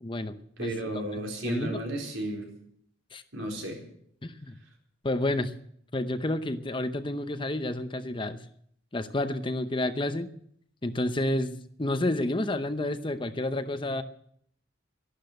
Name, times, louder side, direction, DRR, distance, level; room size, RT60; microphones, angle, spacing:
voice 1, 0.0-0.7 1.1-1.8 3.1-3.2 4.2-4.5 5.0-5.5 5.9-8.4 8.9-10.3 10.8-14.0, left 1 dB, 25° left, 10 dB, 0.7 m, -30 dB
voice 2, 0.6-2.4 3.3-3.8, right 1 dB, 80° right, 0 dB, 4.2 m, -33 dB
12.5 x 12.0 x 7.9 m, 0.67 s
head